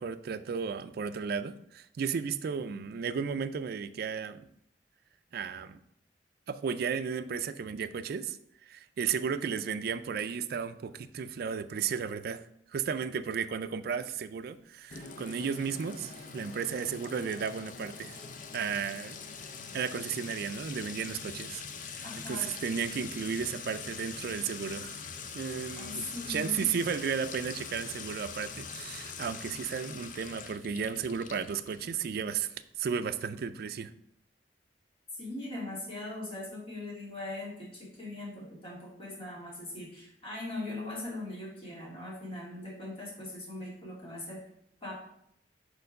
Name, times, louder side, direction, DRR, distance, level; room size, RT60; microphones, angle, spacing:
voice 1, 0.0-4.5 5.3-5.8 6.5-12.4 12.7-18.2 18.5-19.2 19.7-25.0 25.3-32.5 32.8-33.9, right 6 dB, 60° right, 11 dB, 0.3 m, -34 dB
Sink (filling or washing) / Trickle dribble / Fill (with liquid), 14.9-32.4, left 5 dB, 50° left, 0.5 m, -43 dB
voice 2, 22.0-22.5 25.8-26.7 35.2-44.4 44.8-44.9, left 2 dB, 30° left, -5 dB, 2.3 m, -40 dB
4.5 x 4.5 x 5.2 m, 0.72 s
head